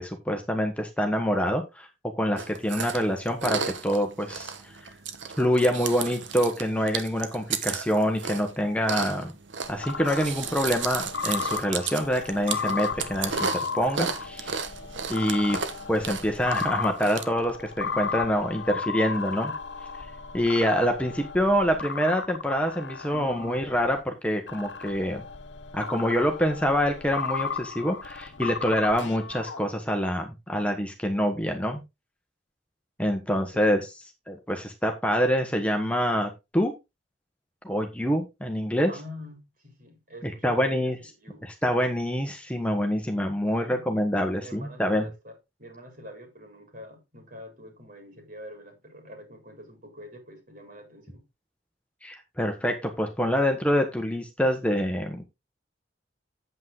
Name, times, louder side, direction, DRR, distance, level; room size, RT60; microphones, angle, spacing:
voice 1, 0.0-1.9 2.2-4.9 5.4-9.3 9.7-13.5 13.7-14.6 15.1-15.6 15.9-19.5 20.3-25.2 25.7-31.8 33.0-33.8 34.3-36.7 37.6-38.9 40.2-41.0 41.4-45.0 52.0-55.2, equal, 5° left, 1.3 m, -26 dB
Chewing mastication, 2.4-17.2, right 6 dB, 85° right, 1.2 m, -34 dB
sound 1, 9.6-24.0 24.5-29.6, left 5 dB, 85° left, 1.1 m, -35 dB
voice 2, 38.9-41.4 43.5-43.8 44.4-51.2, left 1 dB, 50° right, 4.2 m, -46 dB
8.6 x 8.0 x 3.8 m
head